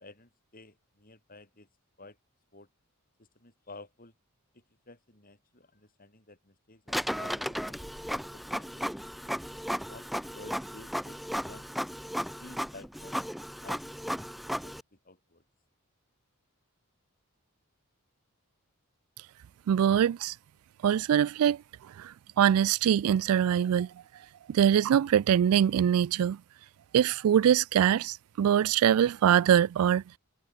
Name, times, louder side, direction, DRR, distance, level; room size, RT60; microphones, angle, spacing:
voice 1, 0.0-1.7 2.0-2.2 2.5-2.7 3.2-4.1 4.5-9.3 9.9-11.2 11.5-11.7 12.4-13.3 13.6-13.8 14.1-14.3 14.6-14.8 15.0-15.4, left 2 dB, 40° left, 6.3 m, -52 dB
Printer, 6.9-14.8, equal, ahead, 0.7 m, -35 dB
voice 2, 19.7-20.3 20.8-21.6 22.0-23.9 24.5-26.4 26.9-30.0, right 9 dB, 75° right, 0.3 m, -23 dB
head